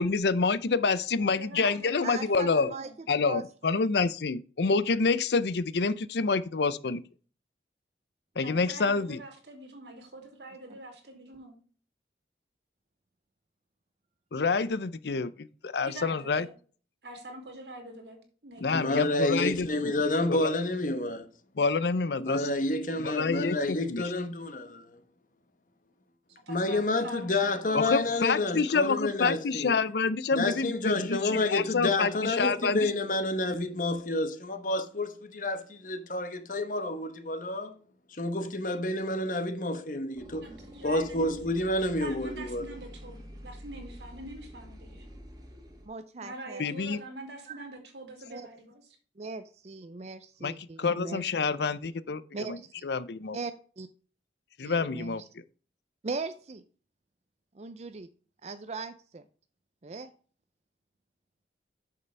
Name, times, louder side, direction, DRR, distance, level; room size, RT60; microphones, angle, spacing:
voice 1, 0.0-2.7 3.1-7.0 8.4-9.2 14.3-16.5 18.6-19.7 20.3-20.5 21.6-22.5 23.0-24.0 27.7-32.9 46.6-47.0 50.4-50.5 50.8-52.6 52.8-53.4 54.6-55.2, left 4 dB, 70° left, 0.6 m, -27 dB
voice 2, 1.1-2.9 8.3-11.6 15.8-16.5 17.0-19.1 26.5-28.3 40.3-41.4 42.0-45.1 46.2-48.8, right 2 dB, 80° right, 2.8 m, -45 dB
voice 3, 2.0-3.4 45.8-46.7 47.5-47.7 48.3-48.4 49.2-51.3 52.3-52.7 53.3-53.9 54.6-55.3 56.0-56.6 57.6-58.1 58.4-59.2 59.8-60.1, right 4 dB, 40° right, 0.5 m, -39 dB
voice 4, 18.7-21.3 22.2-25.0 26.5-29.8 30.3-37.7 38.1-40.5 40.8-42.7, left 2 dB, 50° left, 1.1 m, -29 dB
sound 1, 40.1-45.9, equal, 20° right, 2.1 m, -47 dB
8.7 x 6.7 x 3.4 m
head